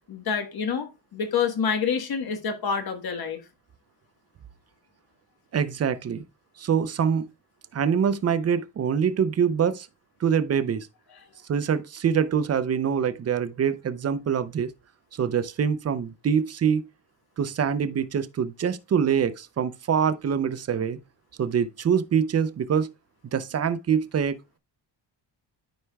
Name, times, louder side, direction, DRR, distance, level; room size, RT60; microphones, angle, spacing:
voice 1, 0.1-3.4, left 6 dB, 55° left, 1.4 m, -27 dB
voice 2, 5.5-6.2 6.6-7.3 7.7-9.9 10.2-10.9 11.5-14.7 15.2-16.9 17.4-21.0 21.4-22.9 23.2-24.6, right 7 dB, 35° right, 0.5 m, -25 dB
13.0 x 4.5 x 2.3 m
cardioid pair, 120°, 44 cm